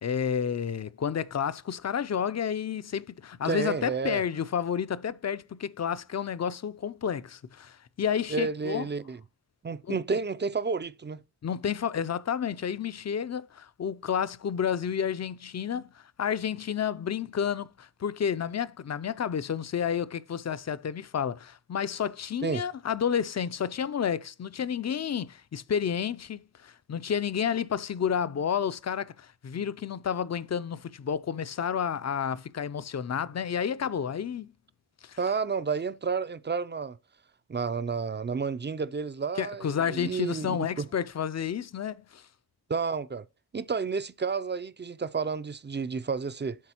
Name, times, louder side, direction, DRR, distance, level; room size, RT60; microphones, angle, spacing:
voice 1, 0.0-8.9 9.9-10.2 11.4-15.9 16.2-34.5 35.0-35.2 39.4-42.2, left 8 dB, 45° left, 0.4 m, -30 dB
voice 2, 3.4-4.2 8.3-9.2 9.6-11.2 22.4-22.6 35.2-37.0 37.5-40.9 42.7-43.3 43.5-46.6, right 5 dB, 30° right, 0.4 m, -31 dB
11.0 x 4.1 x 2.9 m
wide cardioid pair, 75°, 40 cm